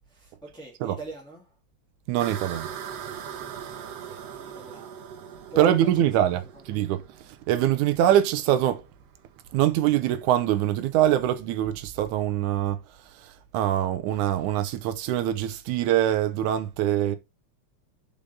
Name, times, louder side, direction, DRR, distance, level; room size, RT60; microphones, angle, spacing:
voice 1, 0.1-1.5 3.8-5.0 5.5-6.3 6.7-6.8, right 1 dB, ahead, 1.1 m, -42 dB
voice 2, 2.1-2.7 5.6-7.0 7.5-8.8 9.5-12.8 13.2-17.2, right 12 dB, 90° right, 2.2 m, -23 dB
sound 1, 2.2-11.3, right 8 dB, 65° right, 2.0 m, -41 dB
5.3 x 5.1 x 5.4 m
omnidirectional pair, 3.5 m